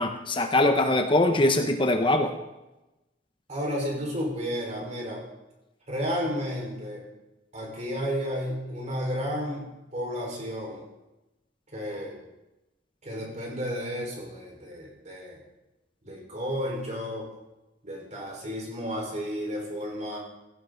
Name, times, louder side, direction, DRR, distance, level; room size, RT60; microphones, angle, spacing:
voice 1, 0.0-2.3, left 2 dB, 30° left, 5 dB, 1.0 m, -22 dB
voice 2, 3.5-5.2 5.9-7.0 7.5-10.8 11.7-12.2 13.0-15.4 16.0-17.3 17.8-20.2, equal, 40° right, -1 dB, 4.9 m, -32 dB
17.0 x 16.0 x 4.0 m, 1.0 s
head